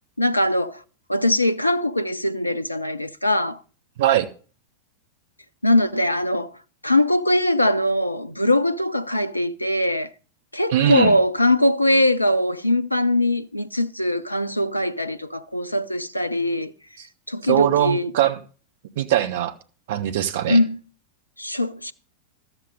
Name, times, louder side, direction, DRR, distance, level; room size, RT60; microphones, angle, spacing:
voice 1, 0.2-0.8 1.1-3.6 5.6-6.5 6.8-10.1 10.5-16.7 17.3-18.1 20.5-20.8 21.4-21.9, left 1 dB, 85° left, 0.6 m, -21 dB
voice 2, 10.7-11.2 17.5-18.4 19.0-19.5 19.9-20.6, right 12 dB, 55° right, 0.9 m, -21 dB
13.0 x 7.9 x 5.3 m
figure-of-eight pair, 90°, 0 cm